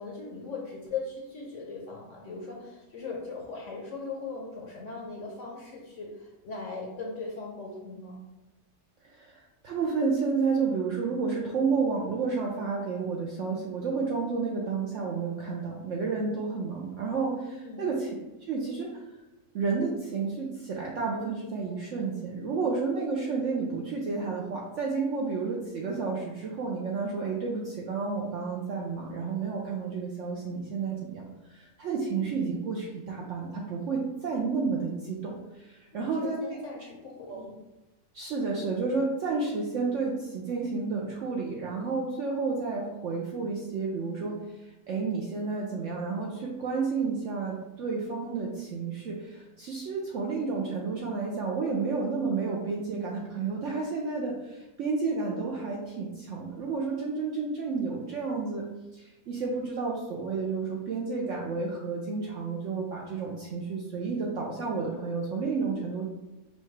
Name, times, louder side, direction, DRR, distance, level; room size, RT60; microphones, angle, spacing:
voice 1, 0.0-8.2 17.5-17.8 35.9-37.6, left 4 dB, 60° left, -2 dB, 0.9 m, -39 dB
voice 2, 9.0-18.1 18.4-19.0 19.5-36.6 37.3-37.4 38.1-58.7 58.9-66.0, right 4 dB, 65° right, -2 dB, 0.7 m, -31 dB
5.5 x 2.3 x 3.2 m, 1.0 s
omnidirectional pair, 1.7 m